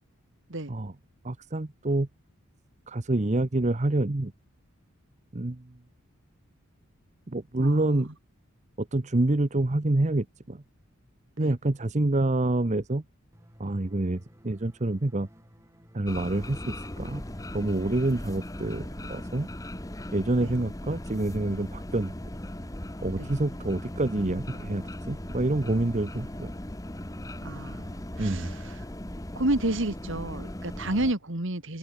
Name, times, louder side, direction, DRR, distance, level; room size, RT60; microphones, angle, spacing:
voice 1, 1.2-2.1 2.9-4.3 5.3-5.7 7.3-8.1 8.8-10.6 11.4-13.0 13.6-15.3 15.9-17.2 17.5-19.5 20.1-22.1 23.0-26.5 28.2-28.5, right 2 dB, 35° right, 0.8 m, -27 dB
voice 2, 7.6-8.1 11.4-11.5 20.4-20.5 23.2-23.3 27.4-28.8 29.4-31.8, right 1 dB, 60° right, 2.2 m, -31 dB
sound 1, 13.3-18.9, equal, 15° right, 6.1 m, -57 dB
sound 2, 16.1-31.1, left 1 dB, 15° left, 1.2 m, -38 dB
open air
head